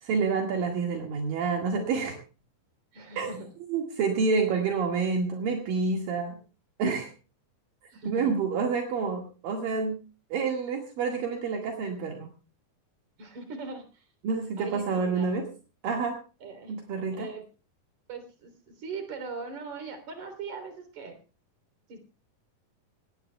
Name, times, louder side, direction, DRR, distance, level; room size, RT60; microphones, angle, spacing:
voice 1, 0.0-2.2 3.2-3.3 3.7-6.4 6.8-7.1 8.1-10.0 10.3-12.3 14.2-15.5 15.8-16.2 16.7-17.3, right 5 dB, 75° right, 1 dB, 3.5 m, -28 dB
voice 2, 2.9-3.5 7.9-8.3 13.2-14.1 14.6-15.3 16.4-16.7 17.1-17.4 18.1-21.2 21.9-22.0, right 4 dB, 55° right, 7 dB, 4.5 m, -40 dB
19.5 x 19.0 x 2.3 m, 0.34 s
omnidirectional pair, 4.1 m